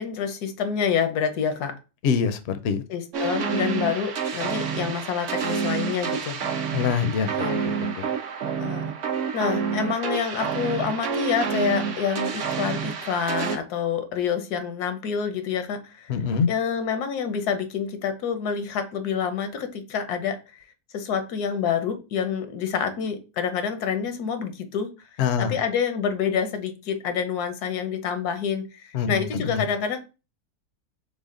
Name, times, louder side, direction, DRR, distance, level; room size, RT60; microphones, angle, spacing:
voice 1, 0.0-1.7 2.9-6.4 7.2-7.6 8.6-16.2 16.5-20.6 20.9-25.1 25.4-30.0, left 7 dB, 85° left, 9 dB, 1.3 m, -27 dB
voice 2, 2.0-2.4 2.6-2.8 6.7-7.3 7.6-8.1 16.1-16.5 25.2-25.6 28.9-29.6, left 6 dB, 65° left, 10 dB, 0.7 m, -24 dB
sound 1, 3.1-13.6, right 6 dB, 60° right, 0.9 m, -28 dB
4.2 x 3.4 x 3.6 m, 0.31 s
omnidirectional pair, 1.6 m